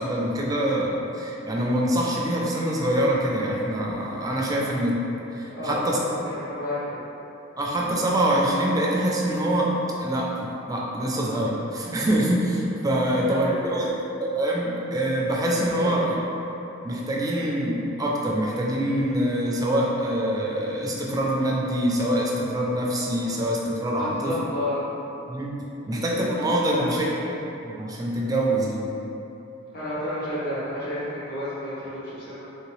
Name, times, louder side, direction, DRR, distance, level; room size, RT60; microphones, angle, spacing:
voice 1, 0.0-5.0 5.3-6.0 7.6-9.7 10.0-16.1 16.8-24.4 25.3-27.1 27.6-28.9, right 1 dB, 20° right, -3 dB, 0.3 m, -25 dB
voice 2, 5.4-7.0 13.0-13.8 15.7-16.0 23.9-24.8 25.8-26.0 26.6-27.3 29.7-32.5, left 1 dB, 50° left, -11 dB, 1.2 m, -32 dB
3.0 x 2.8 x 3.1 m, 3.0 s
head